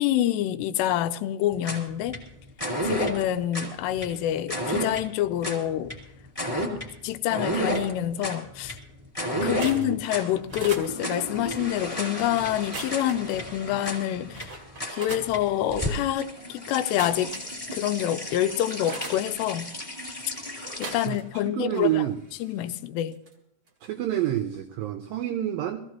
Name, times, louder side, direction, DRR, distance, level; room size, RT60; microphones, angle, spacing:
voice 1, 0.0-2.2 2.9-5.9 7.0-8.8 9.4-14.6 14.9-17.3 17.7-19.8 20.8-22.1 22.4-23.2, left 12 dB, 85° left, 12 dB, 2.8 m, -27 dB
sound 1, 1.5-21.1, equal, 10° left, 1.8 m, -32 dB
sound 2, 9.4-9.9 10.4-10.9 12.5-13.3 13.9-14.0 14.3-15.3 16.8-17.8 18.2-19.2 20.6-21.5 21.7-23.3 23.7-23.9 24.1-24.3, right 3 dB, 65° right, 0.9 m, -40 dB
voice 2, 9.4-9.9 21.1-22.2 23.8-25.8, right 12 dB, 85° right, 6 dB, 2.0 m, -29 dB
21.0 x 15.0 x 3.0 m, 0.77 s
omnidirectional pair, 4.8 m